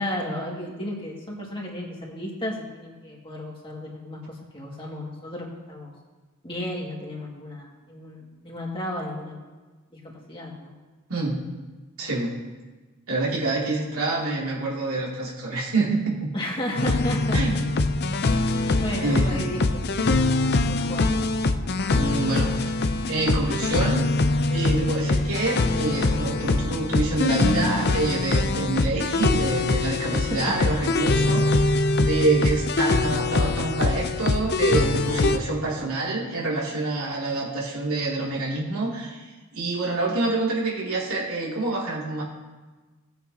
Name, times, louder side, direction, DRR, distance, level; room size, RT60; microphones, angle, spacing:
voice 1, 0.0-4.2 4.5-5.9 6.4-9.4 9.9-10.0 10.3-10.7 16.3-17.4 18.8-19.8 20.5-21.2 30.3-30.4, left 1 dB, 25° left, -3 dB, 2.2 m, -33 dB
voice 2, 12.0-12.3 13.1-16.3 17.3-17.9 19.0-19.3 21.9-22.7 23.1-24.0 24.5-39.3 39.5-42.2, right 2 dB, 85° right, -4 dB, 2.8 m, -27 dB
sound 1, 16.8-35.4, left 2 dB, 50° left, 0.5 m, -23 dB
18.5 x 8.2 x 2.9 m, 1.3 s
head